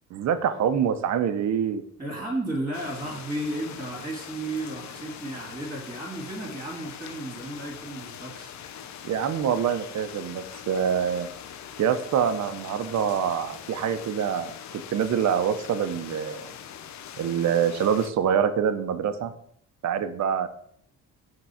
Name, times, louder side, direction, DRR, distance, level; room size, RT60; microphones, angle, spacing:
voice 1, 0.1-1.8 9.0-11.3 11.8-16.5 17.2-19.3 19.8-20.5, right 8 dB, 55° right, 11 dB, 0.8 m, -25 dB
voice 2, 2.0-8.5, right 1 dB, 15° right, -1 dB, 2.3 m, -33 dB
sound 1, 2.7-18.1, left 9 dB, 55° left, 0.7 m, -42 dB
6.0 x 3.8 x 5.6 m, 0.67 s
cardioid pair, 110°, 33 cm